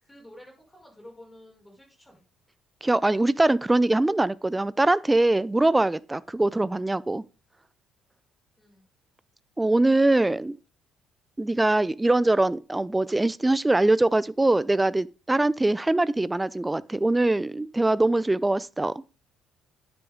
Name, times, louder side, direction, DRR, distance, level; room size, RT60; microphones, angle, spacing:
voice 1, 0.0-2.2 8.6-8.9, left 1 dB, 10° left, 5.5 m, -50 dB
voice 2, 2.8-7.2 9.6-10.6 11.4-18.9, right 2 dB, 15° right, 0.5 m, -22 dB
9.9 x 8.1 x 3.6 m
figure-of-eight pair, 45°, 0 cm